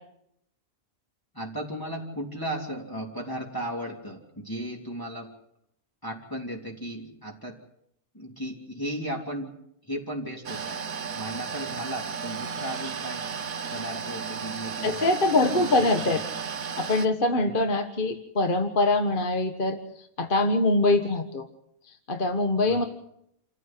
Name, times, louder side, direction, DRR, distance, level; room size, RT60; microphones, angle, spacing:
voice 1, 1.3-5.3 6.0-7.6 8.1-9.6 9.8-10.8 11.1-13.2 13.7-15.1 15.5-15.7 16.0-16.1 17.3-17.6 22.7-22.9, right 1 dB, 15° left, -2 dB, 3.4 m, -35 dB
sound 1, 10.4-17.1, right 6 dB, 75° right, 1.5 m, -34 dB
voice 2, 14.8-16.2 16.8-21.4 21.9-22.8, left 2 dB, 35° left, 6 dB, 1.7 m, -24 dB
29.0 x 15.0 x 7.8 m, 0.75 s
omnidirectional pair, 1.5 m